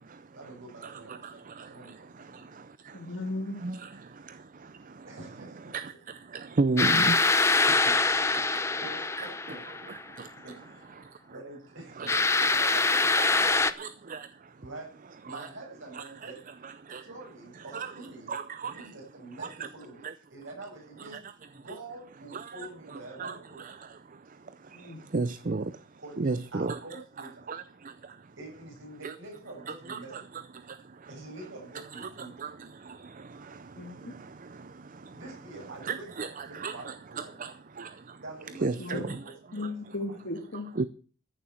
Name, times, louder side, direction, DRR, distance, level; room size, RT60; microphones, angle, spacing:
voice 1, 0.3-2.5 5.0-5.8 7.7-9.9 10.4-11.0 11.3-12.2 12.5-13.7 14.6-16.4 17.0-18.3 18.7-23.6 26.0-27.5 28.4-30.2 31.1-32.3 35.1-37.4 38.2-39.3 39.8-40.1, right 2 dB, 60° right, 7.8 m, -46 dB
voice 2, 2.9-3.6 24.7-25.1 33.8-34.1 38.8-39.2 39.5-40.7, left 2 dB, 55° left, 2.3 m, -36 dB
voice 3, 6.6-7.2 9.2-9.3 12.0-12.2 13.2-13.3 13.8-14.2 15.3-15.5 15.9-16.3 16.6-17.0 17.7-17.9 18.3-18.7 22.3-22.7 23.2-23.3 23.6-23.7 25.1-25.6 26.2-26.8 27.5-27.6 29.0-29.1 29.7-30.2 32.0-32.1 32.4-32.5 35.8-36.9 37.4-37.5 37.8-37.9 38.6-39.2 40.8-40.9, right 3 dB, 40° right, 0.5 m, -31 dB
sound 1, 6.8-10.0 12.1-13.7, left 3 dB, 15° left, 0.6 m, -24 dB
14.0 x 7.0 x 7.7 m
head